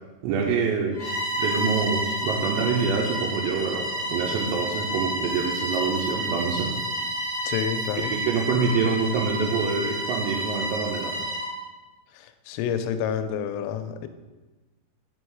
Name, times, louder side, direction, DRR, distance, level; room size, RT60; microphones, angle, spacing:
voice 1, 0.2-1.0 1.4-6.7 8.2-11.1, right 5 dB, 80° right, -1 dB, 2.9 m, -26 dB
Bowed string instrument, 0.9-11.6, right 1 dB, 45° right, 0.6 m, -30 dB
voice 2, 7.5-8.1 12.1-14.1, left 8 dB, 90° left, 9 dB, 2.9 m, -29 dB
6.1 x 5.6 x 4.7 m, 1.2 s
omnidirectional pair, 5.3 m